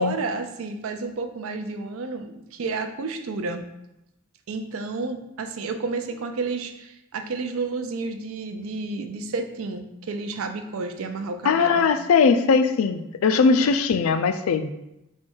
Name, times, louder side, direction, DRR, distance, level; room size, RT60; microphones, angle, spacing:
voice 1, 0.0-3.7 4.5-11.9, right 3 dB, 85° right, 7 dB, 0.5 m, -31 dB
voice 2, 11.4-14.7, left 5 dB, 85° left, 10 dB, 0.4 m, -20 dB
4.5 x 2.3 x 4.3 m, 0.89 s
head